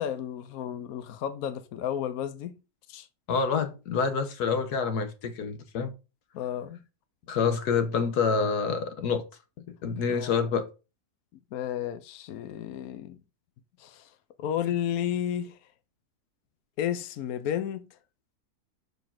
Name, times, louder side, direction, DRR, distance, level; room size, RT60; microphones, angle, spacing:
voice 1, 0.0-2.6 2.9-3.1 6.3-6.8 10.1-10.3 11.5-13.2 13.8-14.1 14.4-15.6 16.8-17.9, left 10 dB, 70° left, 1.1 m, -32 dB
voice 2, 3.3-5.9 7.3-9.2 9.6-10.7, left 5 dB, 90° left, 1.5 m, -27 dB
5.7 x 4.8 x 5.8 m
omnidirectional pair, 1.6 m